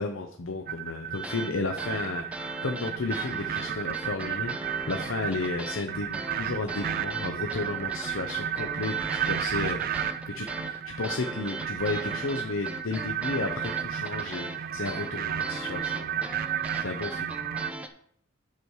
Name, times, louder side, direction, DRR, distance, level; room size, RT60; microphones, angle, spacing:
voice 1, 0.0-16.5 16.8-17.3, left 3 dB, 85° left, 4 dB, 0.7 m, -33 dB
sound 1, 0.7-17.7, right 9 dB, 45° right, 0.3 m, -33 dB
sound 2, 1.1-1.5 1.8-5.9 6.1-17.9, right 1 dB, 5° right, 0.6 m, -40 dB
8.3 x 6.4 x 4.6 m, 0.63 s
head